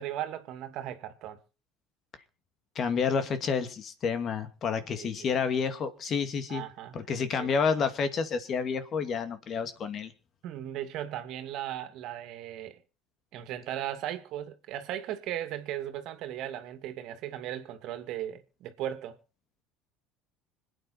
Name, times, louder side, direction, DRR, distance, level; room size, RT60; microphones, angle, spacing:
voice 1, 0.0-1.4 4.9-5.3 6.5-7.5 10.4-12.8 13.3-19.2, right 11 dB, 60° right, 2.3 m, -37 dB
voice 2, 2.8-6.6 6.9-10.1, left 6 dB, 45° left, 2.4 m, -29 dB
26.0 x 9.3 x 4.3 m
hypercardioid pair, 70°, 0 cm